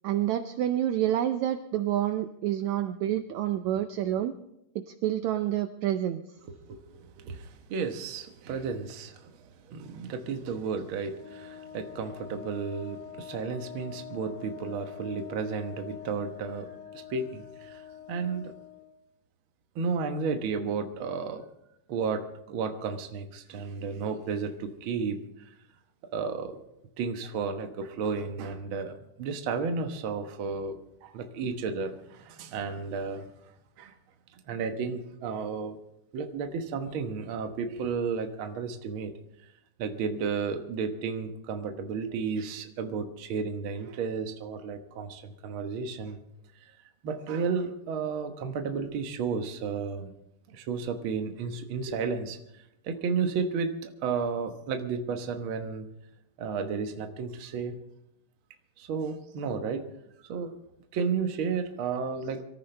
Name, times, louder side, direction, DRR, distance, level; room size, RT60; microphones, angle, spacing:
voice 1, 0.0-4.3 4.7-6.2, right 12 dB, 75° right, 9 dB, 1.7 m, -28 dB
voice 2, 6.5-18.6 19.7-21.4 21.9-25.2 26.1-26.6 27.0-33.3 33.8-33.9 34.3-35.8 36.1-39.1 39.8-46.2 46.6-46.7 47.0-50.1 50.5-55.9 56.4-57.8 58.8-59.8 60.3-60.5 60.9-62.4, right 5 dB, 55° right, 6 dB, 1.5 m, -33 dB
Wind instrument woodwind instrument, 11.1-18.9, left 10 dB, 70° left, 3.1 m, -45 dB
24.5 x 14.0 x 3.4 m, 0.81 s
omnidirectional pair, 3.7 m